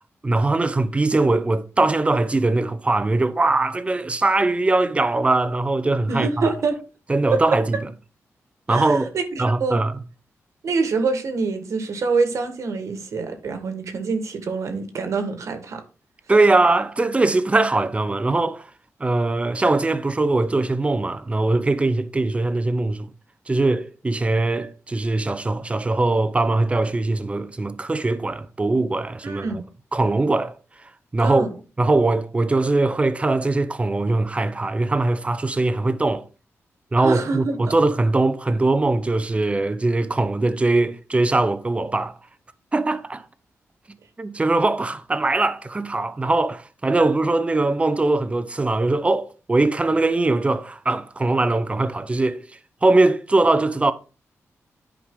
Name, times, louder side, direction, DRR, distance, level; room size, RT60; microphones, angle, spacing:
voice 1, 0.2-6.5 7.1-7.8 8.7-9.1 9.4-10.0 16.3-18.7 19.0-23.1 23.5-29.6 29.9-30.6 30.8-31.4 31.8-36.2 36.9-42.1 42.7-43.3 44.2-52.4 52.8-53.9, right 2 dB, 25° right, 0.7 m, -21 dB
voice 2, 6.1-6.7 8.7-9.8 10.6-15.8 29.2-29.6 31.2-31.5 37.0-37.6, right 4 dB, 70° right, 1.5 m, -25 dB
9.9 x 5.0 x 3.7 m
wide cardioid pair, 105°, 5 cm